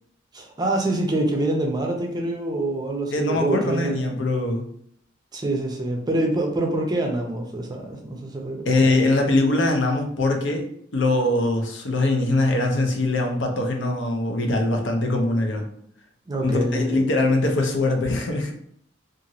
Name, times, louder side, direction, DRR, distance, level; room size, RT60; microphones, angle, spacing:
voice 1, 0.3-4.2 5.3-8.8 16.3-17.1, right 2 dB, 20° right, 2 dB, 0.5 m, -25 dB
voice 2, 3.1-4.6 8.7-10.6 10.9-15.6 16.4-18.5, left 2 dB, 75° left, 3 dB, 0.6 m, -22 dB
2.9 x 2.5 x 2.6 m, 0.68 s
head